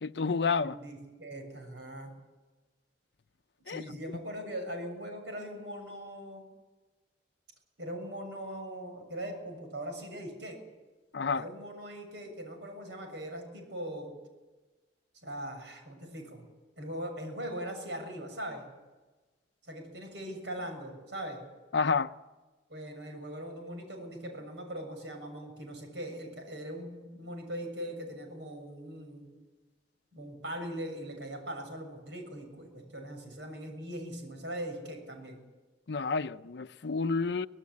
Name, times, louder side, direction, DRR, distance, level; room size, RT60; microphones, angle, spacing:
voice 1, 0.0-0.8 3.7-3.8 11.1-11.4 21.7-22.1 35.9-37.5, left 4 dB, 70° left, 0.6 m, -29 dB
voice 2, 0.6-2.1 3.7-6.4 7.8-10.6 11.3-14.1 15.2-16.4 16.8-18.7 19.6-21.4 22.7-29.3 30.1-35.4, right 1 dB, 75° right, 6.9 m, -40 dB
25.0 x 18.0 x 8.6 m
head